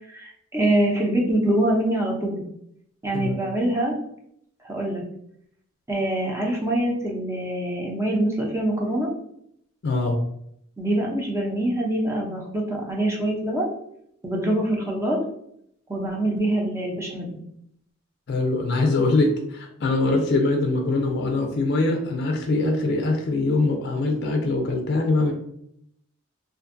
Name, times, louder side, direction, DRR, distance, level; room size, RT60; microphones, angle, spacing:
voice 1, 0.1-2.4 3.0-3.9 4.6-5.0 5.9-9.1 10.8-13.7 14.2-15.2 15.9-17.4, right 1 dB, 15° right, -1 dB, 0.5 m, -24 dB
voice 2, 9.8-10.2 18.3-25.3, left 2 dB, 55° left, 2 dB, 0.4 m, -23 dB
2.5 x 2.2 x 2.5 m, 0.72 s
head